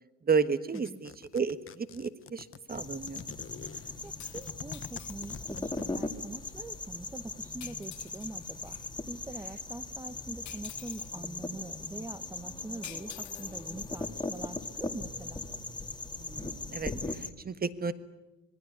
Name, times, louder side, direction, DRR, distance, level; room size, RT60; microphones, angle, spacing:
voice 1, 0.2-3.2 16.2-17.9, right 5 dB, 30° right, 12 dB, 1.4 m, -32 dB
sound 1, 0.7-6.2, left 8 dB, 45° left, 1.1 m, -47 dB
sound 2, 2.7-17.3, left 3 dB, 15° left, 2.1 m, -39 dB
sound 3, 4.0-5.7 7.6-8.9 10.5-11.2 12.8-14.4, left 13 dB, 65° left, 1.0 m, -49 dB
voice 2, 4.0-8.8 9.1-15.4, right 2 dB, 10° right, 8 dB, 1.0 m, -44 dB
26.0 x 20.5 x 9.8 m, 1.1 s
cardioid pair, 120°, 31 cm